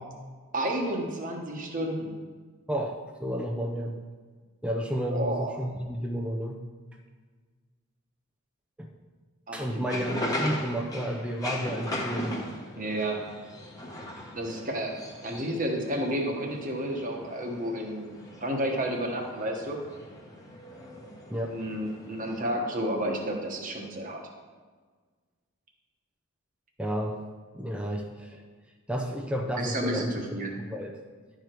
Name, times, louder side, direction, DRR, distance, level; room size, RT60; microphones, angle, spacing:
voice 1, 0.5-2.1 5.1-5.5 9.5-10.2 12.7-13.2 14.3-15.0 15.2-19.8 21.4-24.2 29.6-30.5, right 1 dB, 35° right, 1 dB, 1.2 m, -31 dB
voice 2, 2.7-4.0 4.6-6.6 8.8-8.9 9.5-12.4 21.3-21.6 26.8-27.2 27.5-28.4 28.9-30.2 30.6-31.0, equal, 5° right, 1 dB, 0.5 m, -31 dB
sound 1, 9.6-22.4, left 1 dB, 15° left, 1.1 m, -38 dB
11.5 x 4.9 x 4.5 m, 1.5 s
head